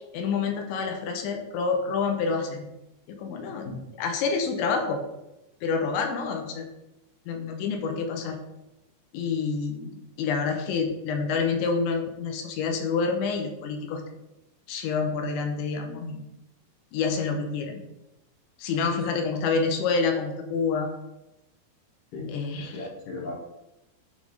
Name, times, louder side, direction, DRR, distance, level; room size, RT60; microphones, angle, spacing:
voice 1, 0.1-2.7 3.1-3.7 4.0-5.0 5.6-6.7 7.3-8.4 9.1-14.0 14.7-16.2 16.9-17.8 18.6-20.9 22.3-22.8, left 5 dB, 85° left, 4 dB, 3.1 m, -28 dB
voice 2, 22.6-23.3, left 3 dB, 65° left, -4 dB, 2.4 m, -37 dB
9.8 x 3.6 x 3.8 m, 0.92 s
omnidirectional pair, 5.3 m